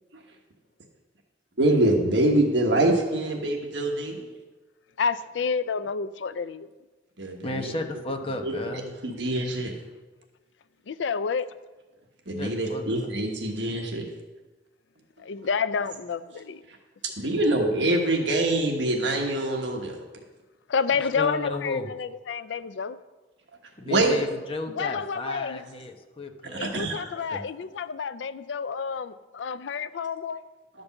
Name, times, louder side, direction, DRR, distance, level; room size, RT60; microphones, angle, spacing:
voice 1, 1.6-4.3 7.2-7.7 8.4-8.5 9.0-9.7 12.3-14.0 17.2-20.0 23.9-24.2 26.5-27.1, right 1 dB, 75° right, 1.3 m, -24 dB
voice 2, 5.0-6.7 10.9-11.5 15.2-16.6 20.7-23.0 24.8-25.6 26.6-30.4, left 5 dB, 85° left, 0.4 m, -29 dB
voice 3, 7.4-8.9 12.4-12.8 21.1-21.9 23.8-27.4, left 3 dB, 30° left, 0.9 m, -34 dB
11.5 x 5.2 x 7.0 m
head